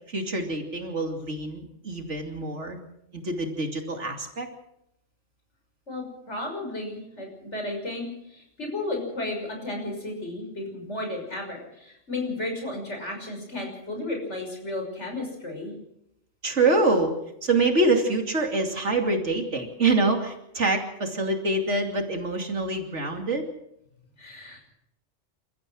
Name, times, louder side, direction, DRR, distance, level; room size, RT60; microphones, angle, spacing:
voice 1, 0.1-2.8 3.2-4.5 16.4-17.1 17.4-23.4, right 2 dB, 70° right, 4 dB, 3.1 m, -25 dB
voice 2, 5.9-15.7 24.2-24.7, left 2 dB, 65° left, 2 dB, 6.3 m, -33 dB
28.5 x 14.0 x 6.4 m, 0.81 s
omnidirectional pair, 1.3 m